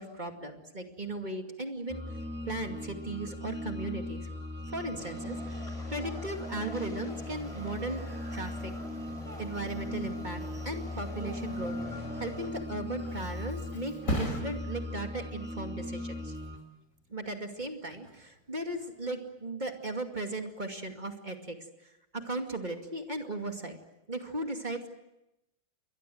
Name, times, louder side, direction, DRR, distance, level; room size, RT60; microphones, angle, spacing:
voice 1, 0.0-2.0 2.4-4.3 4.7-8.0 8.3-8.7 9.4-16.3 17.1-21.6 21.8-23.8 24.1-24.9, right 2 dB, 20° right, 4 dB, 2.4 m, -37 dB
sound 1, 1.9-16.6, left 1 dB, 5° right, 2.2 m, -39 dB
sound 2, 5.0-12.5, left 1 dB, 15° left, 4.7 m, -47 dB
Thump thud, 12.6-19.9 20.4-20.8, equal, 35° left, 5.4 m, -41 dB
29.0 x 22.5 x 7.9 m, 0.91 s
omnidirectional pair, 2.3 m